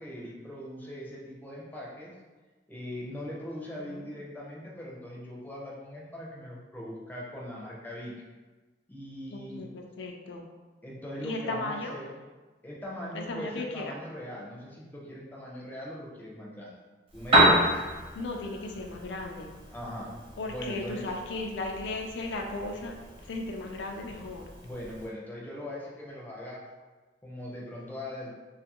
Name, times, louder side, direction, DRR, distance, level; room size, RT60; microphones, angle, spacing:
voice 1, 0.0-2.1 2.7-8.1 8.9-9.7 10.8-12.1 12.6-16.8 17.1-17.8 19.7-20.2 20.5-21.1 24.6-26.7 27.2-28.3, left 1 dB, 10° left, -5 dB, 0.5 m, -40 dB
voice 2, 3.7-4.1 9.3-10.5 11.2-12.0 13.1-13.9 18.1-19.5 20.4-23.0 23.2-24.4, left 2 dB, 85° left, 2 dB, 0.4 m, -36 dB
Piano, 17.1-25.1, right 1 dB, 30° right, 0.7 m, -30 dB
2.5 x 2.3 x 2.9 m, 1.3 s
head